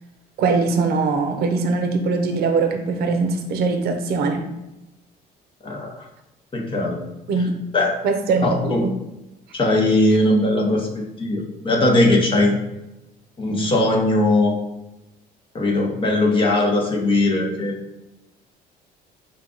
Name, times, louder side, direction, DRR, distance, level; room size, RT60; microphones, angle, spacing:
voice 1, 0.4-4.4 7.3-7.5 8.0-8.9, right 4 dB, 65° right, 5 dB, 0.7 m, -21 dB
voice 2, 5.6-5.9 6.5-7.0 7.7-8.0 8.4-8.9 9.5-12.6 13.4-14.6 15.5-17.8, left 2 dB, 30° left, -1 dB, 0.9 m, -19 dB
4.5 x 2.4 x 3.8 m, 0.94 s
cardioid pair, 110°, 17 cm